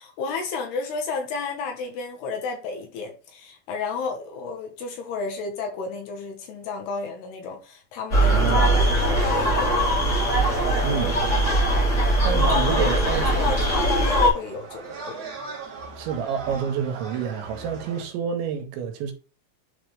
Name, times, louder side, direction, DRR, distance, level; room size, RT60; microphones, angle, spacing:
voice 1, 0.0-10.0 10.8-11.0 12.5-15.2, left 4 dB, 70° left, 3.1 m, -32 dB
sound 1, 8.1-14.3, right 1 dB, 25° left, 1.5 m, -21 dB
voice 2, 8.3-8.8 10.8-11.2 12.2-13.6 16.0-19.1, right 7 dB, 85° right, 3.3 m, -28 dB
sound 2, 13.1-18.0, right 4 dB, 50° right, 2.1 m, -39 dB
11.0 x 3.7 x 3.4 m
omnidirectional pair, 5.2 m